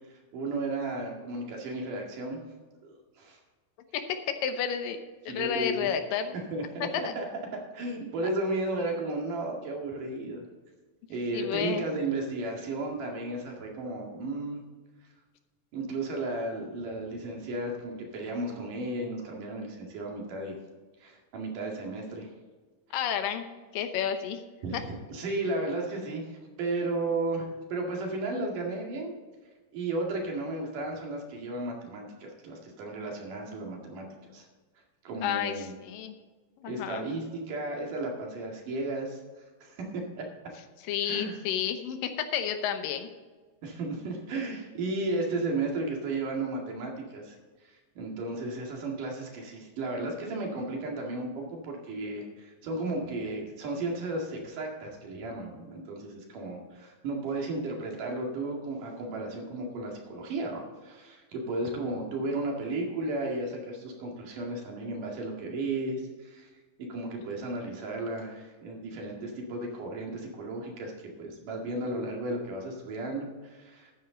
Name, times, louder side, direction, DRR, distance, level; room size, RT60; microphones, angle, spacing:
voice 1, 0.1-2.4 2.8-3.4 5.3-5.9 6.5-7.3 7.5-10.4 11.1-14.6 15.7-20.6 21.0-22.3 24.6-26.3 26.6-29.1 29.7-34.1 34.3-34.5 35.0-35.8 36.7-39.2 39.6-40.2 41.0-41.4 43.6-47.4 47.6-66.5 66.8-70.9 71.2-73.9, right 2 dB, 70° right, 0 dB, 3.6 m, -34 dB
voice 2, 4.3-5.0 5.3-6.3 6.9-7.1 11.3-11.9 22.9-23.5 23.7-24.4 24.7-24.8 35.2-36.1 36.6-37.1 40.9-43.1, left 9 dB, 80° left, 8 dB, 2.6 m, -31 dB
13.0 x 9.6 x 3.9 m, 1.4 s
omnidirectional pair, 3.9 m